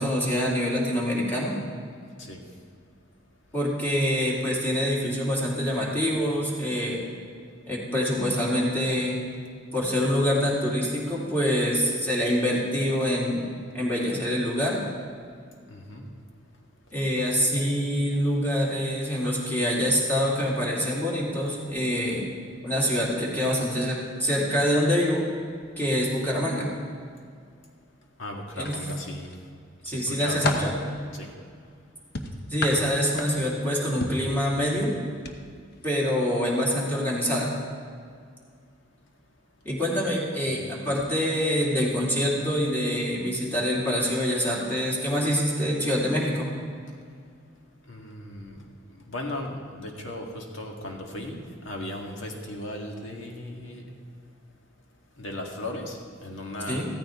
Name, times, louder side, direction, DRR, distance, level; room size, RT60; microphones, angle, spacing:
voice 1, 0.0-1.5 3.5-7.0 7.7-9.2 9.7-13.4 13.7-14.8 16.9-22.3 22.6-25.2 25.8-26.7 28.5-28.8 29.8-30.8 32.5-35.0 35.8-37.5 39.6-46.5 56.7-56.9, equal, 10° left, -5 dB, 2.9 m, -25 dB
voice 2, 15.7-16.1 28.2-29.3 29.9-30.5 31.1-31.3 40.5-40.6 47.9-48.6 48.9-53.8 55.2-56.8, left 1 dB, 70° left, 1 dB, 1.9 m, -37 dB
sound 1, 28.6-29.4 29.9-30.8 32.1-33.6 34.0-34.3 35.2-35.4 35.7-35.9, left 2 dB, 55° left, 1.0 m, -31 dB
15.0 x 14.0 x 3.7 m, 2.1 s
head